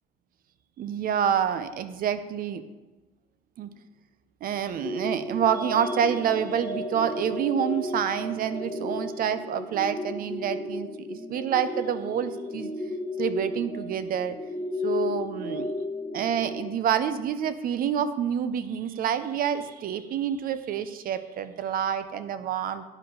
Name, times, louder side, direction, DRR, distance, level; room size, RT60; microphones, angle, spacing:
voice 1, 0.8-2.6 3.6-3.7 4.4-12.7 13.2-14.4 14.8-15.7 16.1-22.8, right 8 dB, 60° right, 12 dB, 0.7 m, -28 dB
sound 1, 4.8-16.7, left 2 dB, 10° left, 2.1 m, -34 dB
10.5 x 5.5 x 5.5 m, 1.2 s
cardioid pair, 110°, 17 cm